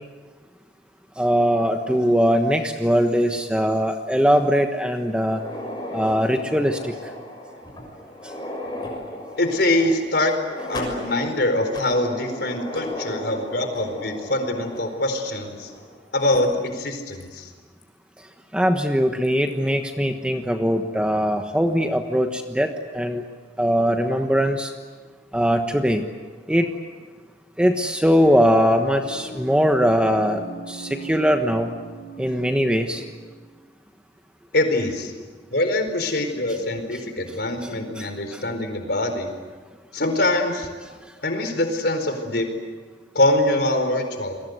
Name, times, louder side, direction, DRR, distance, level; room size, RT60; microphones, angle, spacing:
voice 1, 1.2-5.4 5.9-6.9 18.5-23.2 23.6-24.7 25.3-26.0 26.5-26.7 27.6-30.4 30.7-31.7 32.2-33.0 38.0-38.1 38.3-38.4, equal, 5° right, 5 dB, 1.3 m, -21 dB
sound 1, 5.2-16.0 16.3-16.4 17.2-17.3 17.8-17.9 19.2-19.5, left 1 dB, 25° left, 6.5 m, -35 dB
voice 2, 9.4-10.4 10.7-15.7 16.1-17.5 34.5-35.1 35.5-39.3 39.9-40.7 41.2-42.5 43.1-44.4, left 1 dB, 65° left, 6 dB, 4.4 m, -23 dB
sound 2, 28.1-33.6, right 1 dB, 80° left, 5.7 m, -39 dB
29.5 x 22.5 x 8.1 m, 1.4 s
head